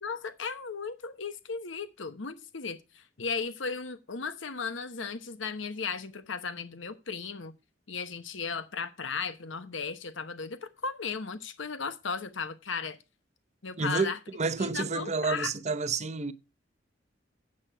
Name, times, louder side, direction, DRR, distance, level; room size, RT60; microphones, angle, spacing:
voice 1, 0.0-7.5 7.9-13.0 13.6-14.2 14.6-15.5, left 5 dB, 85° left, 1.0 m, -36 dB
voice 2, 13.8-16.3, right 4 dB, 40° right, 0.7 m, -30 dB
8.7 x 7.6 x 5.6 m
head